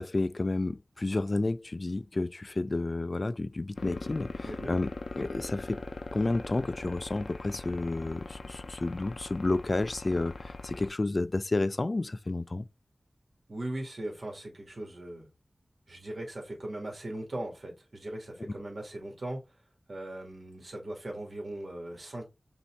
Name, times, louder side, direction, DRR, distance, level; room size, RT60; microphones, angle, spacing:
voice 1, 0.0-4.9 5.1-5.8 6.1-12.7, left 2 dB, 50° left, 0.3 m, -31 dB
sound 1, 3.8-10.9, left 3 dB, 85° left, 0.6 m, -40 dB
voice 2, 13.5-15.3 15.9-19.4 19.9-22.3, right 1 dB, 70° right, 1.9 m, -39 dB
5.3 x 2.7 x 3.3 m
wide cardioid pair, 65°, 0 cm